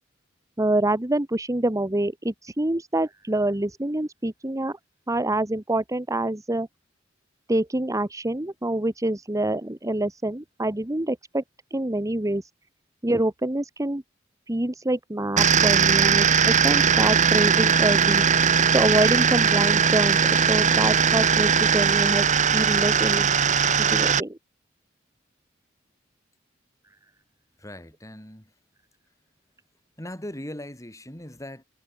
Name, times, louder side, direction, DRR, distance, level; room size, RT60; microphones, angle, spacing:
voice 1, 0.6-4.8 5.1-6.7 7.5-11.4 11.7-12.4 13.0-14.0 14.5-18.2 18.7-20.2 20.5-22.3 22.5-23.3 23.9-24.4, right 1 dB, 15° right, 1.2 m, -26 dB
sound 1, 15.4-24.2, right 6 dB, 40° right, 1.2 m, -19 dB
voice 2, 27.6-28.5 30.0-31.6, left 1 dB, 15° left, 6.4 m, -39 dB
head